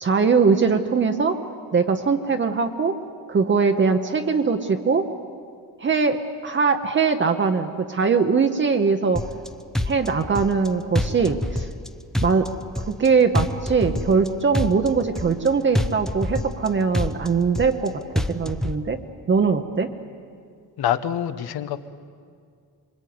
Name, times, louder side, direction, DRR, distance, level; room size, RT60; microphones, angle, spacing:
voice 1, 0.0-1.4 1.7-3.0 3.3-5.1 5.8-9.2 9.8-11.7 12.2-12.5 13.0-19.0 19.3-19.9, right 5 dB, 30° right, 5 dB, 1.0 m, -21 dB
sound 1, 9.2-9.5 9.7-10.7 11.0-11.9 12.1-13.1 13.4-14.3 14.5-15.5 15.8-16.7 16.9-17.9 18.2-18.8, left 1 dB, ahead, 0.7 m, -26 dB
voice 2, 20.8-21.9, left 10 dB, 80° left, 11 dB, 1.2 m, -26 dB
26.0 x 23.5 x 9.6 m, 2.2 s
wide cardioid pair, 170°, 37 cm